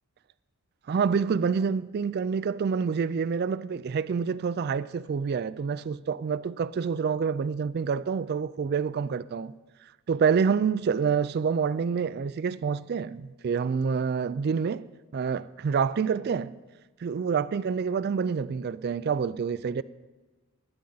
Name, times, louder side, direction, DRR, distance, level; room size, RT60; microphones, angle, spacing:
voice 1, 0.9-9.5 10.1-14.9 15.1-16.5 17.0-19.8, right 6 dB, 45° right, 0.3 m, -27 dB
20.5 x 9.8 x 4.0 m
head